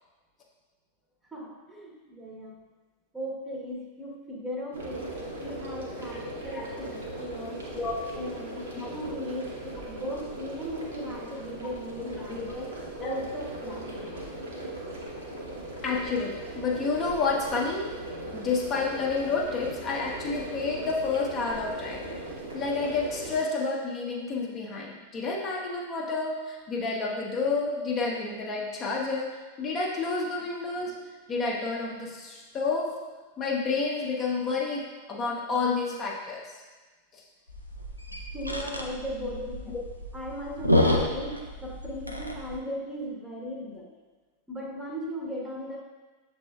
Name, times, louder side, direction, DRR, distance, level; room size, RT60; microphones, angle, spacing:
voice 1, 1.3-2.6 3.1-5.1 5.4-7.7 8.1-12.7 13.0-14.3 30.9-31.0 38.3-39.7 40.1-43.9 44.5-45.8, equal, 10° right, -2 dB, 0.8 m, -37 dB
sound 1, 4.7-23.4, right 1 dB, 70° right, 0.9 m, -38 dB
voice 2, 8.7-9.2 12.0-12.5 13.0-13.1 15.8-17.8 18.3-22.0 22.5-31.0 31.3-32.9 33.4-36.5 37.1-37.2 39.3-39.4 39.7-39.8, left 4 dB, 30° left, -2 dB, 0.6 m, -30 dB
sound 2, 37.5-42.6, left 1 dB, 90° right, 0.4 m, -29 dB
6.7 x 3.4 x 2.3 m, 1.3 s
figure-of-eight pair, 90°, 0 cm